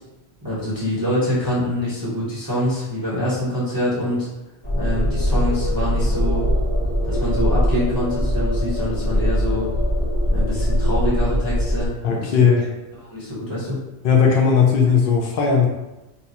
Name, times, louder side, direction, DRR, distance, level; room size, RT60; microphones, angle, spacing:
voice 1, 0.4-4.3 4.8-6.5 7.0-9.7 10.3-12.5 13.1-13.8, equal, 20° right, -10 dB, 0.9 m, -25 dB
sound 1, 4.6-11.9, equal, 40° left, 1.3 m, -21 dB
voice 2, 12.0-12.7 14.0-15.7, left 6 dB, 60° left, -1 dB, 0.7 m, -17 dB
2.8 x 2.3 x 4.1 m, 1.0 s
omnidirectional pair, 1.1 m